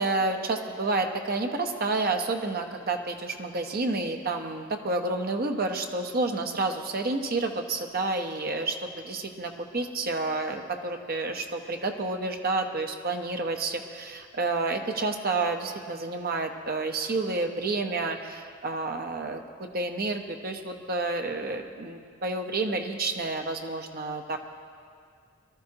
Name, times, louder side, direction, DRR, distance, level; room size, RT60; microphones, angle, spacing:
voice 1, 0.0-24.4, right 3 dB, 50° right, 4 dB, 1.0 m, -30 dB
23.0 x 13.0 x 2.9 m, 2.1 s
head